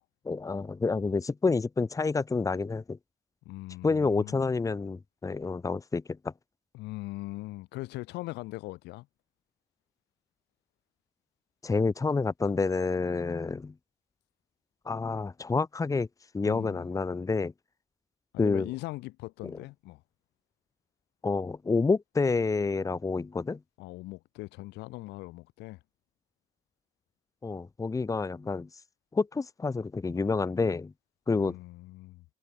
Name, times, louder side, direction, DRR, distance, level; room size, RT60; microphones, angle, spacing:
voice 1, 0.2-3.0 3.8-6.3 11.6-13.7 14.8-16.1 16.3-17.5 18.4-18.7 19.4-19.5 21.2-23.6 27.4-28.7 29.1-30.9 31.3-31.6, left 4 dB, 20° left, 1.4 m, -28 dB
voice 2, 3.4-4.4 6.7-9.1 16.4-16.9 18.3-20.0 23.8-25.8 31.4-32.3, left 20 dB, 90° left, 4.9 m, -40 dB
cardioid pair, 110°, 17 cm